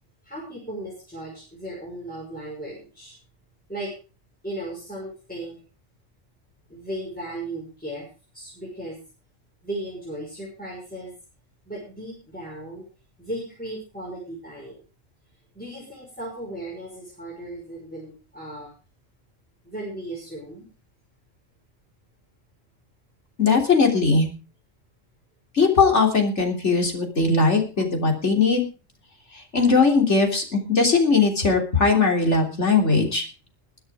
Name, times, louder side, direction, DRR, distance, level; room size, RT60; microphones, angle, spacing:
voice 1, 0.2-3.1 3.7-3.9 4.4-5.6 6.7-8.0 8.3-9.0 9.6-11.1 11.7-12.8 13.2-14.8 15.5-18.7 19.6-20.7, right 1 dB, 5° left, -4 dB, 6.0 m, -36 dB
voice 2, 23.4-24.3 25.5-28.7 29.5-33.2, left 4 dB, 60° left, 2 dB, 3.7 m, -19 dB
22.0 x 7.9 x 4.9 m, 0.35 s
omnidirectional pair, 1.4 m